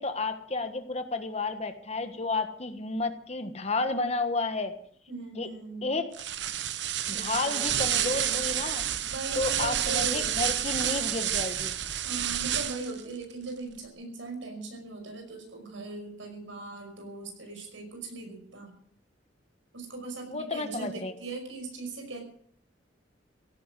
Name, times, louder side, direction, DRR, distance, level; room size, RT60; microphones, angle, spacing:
voice 1, 0.0-4.7 5.4-5.5 5.8-6.0 7.1-8.8 9.4-11.7 20.3-21.1, left 3 dB, 35° left, 8 dB, 1.4 m, -31 dB
voice 2, 5.1-5.9 7.1-8.2 9.0-10.3 12.0-18.7 19.7-22.2, right 3 dB, 85° right, 3 dB, 5.5 m, -39 dB
sound 1, 6.1-13.0, right 10 dB, 65° right, 1.0 m, -29 dB
16.5 x 10.0 x 7.6 m, 0.62 s
head